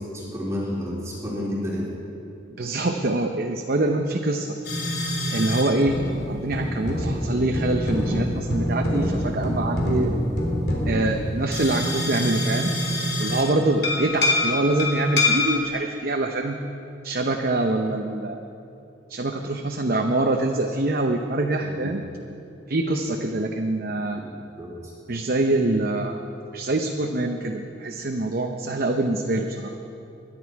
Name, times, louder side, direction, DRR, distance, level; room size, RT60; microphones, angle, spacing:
voice 1, 0.1-1.9 21.6-21.9 24.6-24.9, equal, 15° right, -5 dB, 2.8 m, -31 dB
voice 2, 2.5-4.6 5.3-6.0 6.3-10.1 10.9-12.7 13.2-16.6 17.0-18.4 19.1-22.0 22.7-24.2 25.1-26.2 26.5-29.8, right 2 dB, 50° right, 4 dB, 0.7 m, -25 dB
sound 1, 4.6-5.6 5.9-13.5 13.8-15.6, left 1 dB, 55° left, 3.1 m, -25 dB
22.0 x 11.0 x 4.7 m, 2.7 s
head